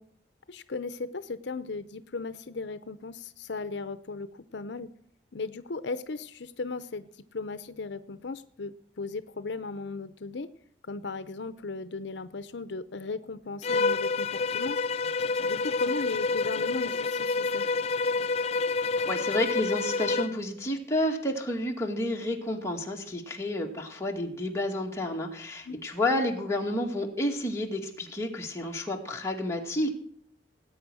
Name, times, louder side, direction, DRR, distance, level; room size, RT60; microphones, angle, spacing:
voice 1, 0.5-4.9 5.3-10.5 10.8-14.8 15.4-17.6 25.7-25.8, left 3 dB, 75° left, 13 dB, 0.7 m, -36 dB
Bowed string instrument, 13.6-20.4, left 4 dB, 35° left, 0.5 m, -28 dB
voice 2, 19.1-29.9, left 1 dB, 15° left, 0 dB, 2.2 m, -30 dB
18.5 x 8.8 x 6.3 m, 0.65 s
head